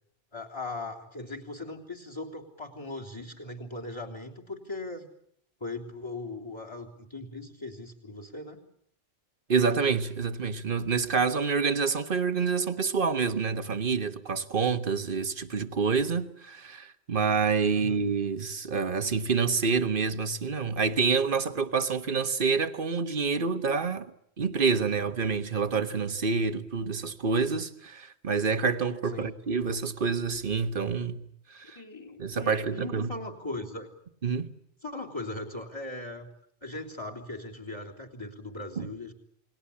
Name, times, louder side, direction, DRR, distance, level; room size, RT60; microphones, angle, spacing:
voice 1, 0.3-5.1 5.6-8.6 17.7-18.0 29.1-29.4 31.6-33.9 34.8-36.3 36.6-39.1, left 2 dB, 25° left, 3.6 m, -39 dB
voice 2, 9.5-24.1 24.4-31.2 31.5-31.8 32.2-33.1 34.2-34.5 38.8-38.9, right 5 dB, 55° right, 1.5 m, -27 dB
29.0 x 20.5 x 8.6 m
omnidirectional pair, 1.1 m